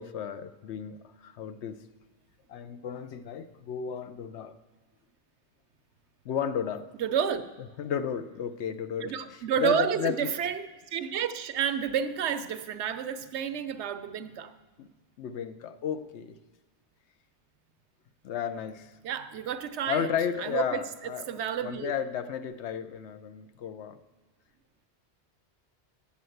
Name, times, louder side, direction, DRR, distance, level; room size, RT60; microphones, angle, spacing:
voice 1, 0.0-1.8 2.5-4.5 6.2-6.8 7.8-9.1 9.6-10.3 14.8-14.9 15.2-16.3 18.2-18.9 19.9-21.2 21.6-24.0, left 8 dB, 85° left, 11 dB, 0.9 m, -33 dB
voice 2, 7.0-7.4 9.0-14.5 19.0-20.1 20.4-21.9, right 8 dB, 85° right, 11 dB, 0.9 m, -30 dB
8.6 x 7.2 x 7.8 m, 1.3 s
omnidirectional pair, 1.1 m